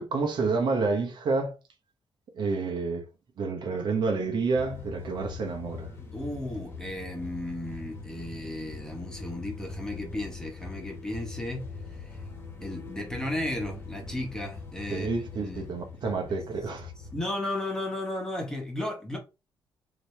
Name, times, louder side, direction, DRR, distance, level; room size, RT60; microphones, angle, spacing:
voice 1, 0.0-1.6 2.4-3.0 3.4-5.9 14.9-16.9, right 4 dB, 55° right, 1.1 m, -29 dB
sound 1, 4.6-17.2, left 4 dB, 25° left, 1.4 m, -42 dB
voice 2, 6.1-11.7 12.6-15.6 17.1-19.2, left 1 dB, 5° left, 1.4 m, -34 dB
5.0 x 3.0 x 3.4 m
cardioid pair, 145°, 9 cm